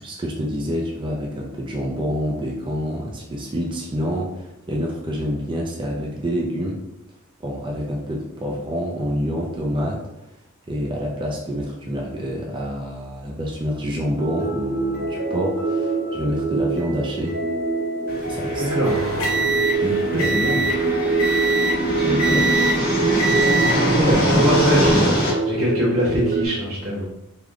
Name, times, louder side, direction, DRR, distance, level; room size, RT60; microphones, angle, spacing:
voice 1, 0.0-6.8 7.4-10.0 10.7-17.4 18.3-18.7 19.8-20.3 21.9-22.5 23.0-23.1, equal, 25° right, -1 dB, 0.4 m, -27 dB
sound 1, 14.2-26.5, right 3 dB, 50° right, 1.1 m, -24 dB
sound 2, 18.1-25.3, equal, 45° left, 1.3 m, -23 dB
voice 2, 18.6-19.0 20.1-20.6 23.8-27.1, equal, 90° right, -6 dB, 1.5 m, -23 dB
sound 3, 18.8-20.8 21.2-21.8 22.2-22.8 23.2-23.8 24.6-24.9, right 3 dB, 85° left, 1.0 m, -24 dB
3.5 x 2.2 x 3.6 m, 0.94 s
head